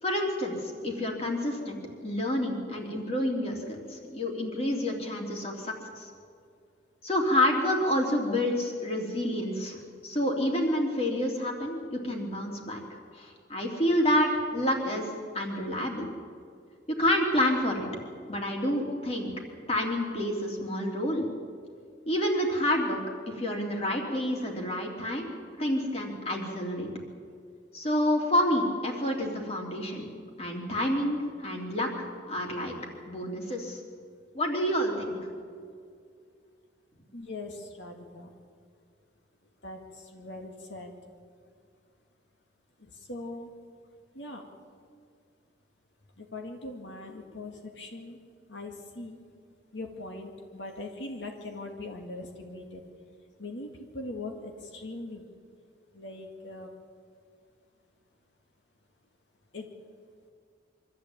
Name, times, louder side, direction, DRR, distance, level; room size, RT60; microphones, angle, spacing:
voice 1, 0.0-6.1 7.0-9.8 10.0-15.1 15.3-16.1 17.0-17.8 18.3-19.3 19.7-21.2 22.1-23.0 23.3-25.3 25.6-26.9 27.7-30.0 30.4-31.9 32.2-32.7 33.1-33.8 34.3-35.2, left 1 dB, 35° left, 0 dB, 3.3 m, -28 dB
voice 2, 37.1-38.3 39.6-40.9 42.8-43.5 44.1-44.4 46.2-48.2 48.5-49.2 49.7-52.8 53.4-55.3 55.9-56.7 59.5-59.7, left 2 dB, 85° left, 3 dB, 2.1 m, -41 dB
24.5 x 14.0 x 8.9 m, 2.2 s
head